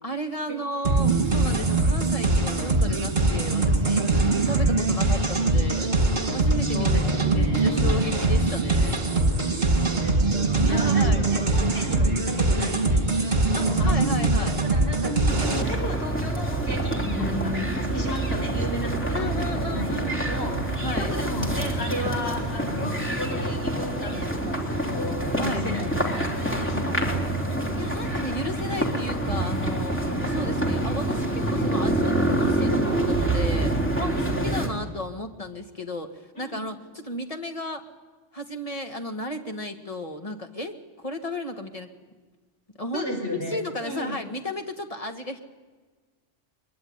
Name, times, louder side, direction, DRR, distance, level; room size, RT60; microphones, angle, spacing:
voice 1, 0.0-5.9 6.3-6.9 7.3-9.0 10.6-11.2 13.6-14.6 19.1-20.3 20.8-21.1 25.4-25.6 26.9-27.0 27.7-37.8 38.3-41.9 42.8-43.1 43.3-45.4, left 1 dB, 30° left, 5 dB, 1.8 m, -34 dB
sound 1, 0.8-15.6, right 2 dB, 40° right, 2.5 m, -22 dB
voice 2, 6.7-7.7 9.6-14.1 14.4-17.6 17.9-27.6 34.2-34.5 36.3-36.7 42.9-44.2, left 1 dB, 60° left, 2 dB, 5.0 m, -35 dB
sound 2, 15.3-34.7, right 1 dB, 10° left, 3.5 m, -26 dB
23.0 x 22.5 x 9.6 m, 1.4 s
omnidirectional pair, 1.2 m